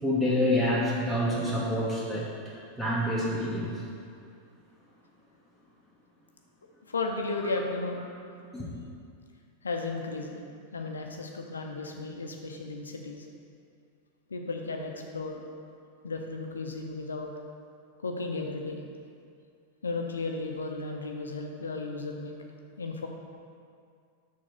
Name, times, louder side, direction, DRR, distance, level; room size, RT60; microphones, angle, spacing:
voice 1, 0.0-3.8 8.5-8.7, left 1 dB, 5° right, -8 dB, 1.3 m, -27 dB
voice 2, 6.9-8.0 9.6-10.4 10.7-13.3 14.3-15.4 16.0-17.3 18.0-18.8 19.8-22.3 22.8-23.1, left 3 dB, 75° left, 2 dB, 0.7 m, -34 dB
6.3 x 3.9 x 6.2 m, 2.3 s
figure-of-eight pair, 90°, 0 cm